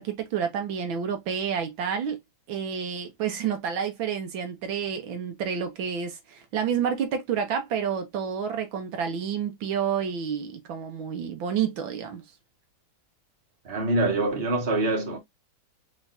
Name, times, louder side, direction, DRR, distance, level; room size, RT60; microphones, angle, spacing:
voice 1, 0.0-2.2 2.5-12.2, right 7 dB, 80° right, 1.8 m, -29 dB
voice 2, 13.7-15.2, right 2 dB, 30° right, 1.9 m, -25 dB
4.7 x 3.7 x 2.6 m
omnidirectional pair, 2.1 m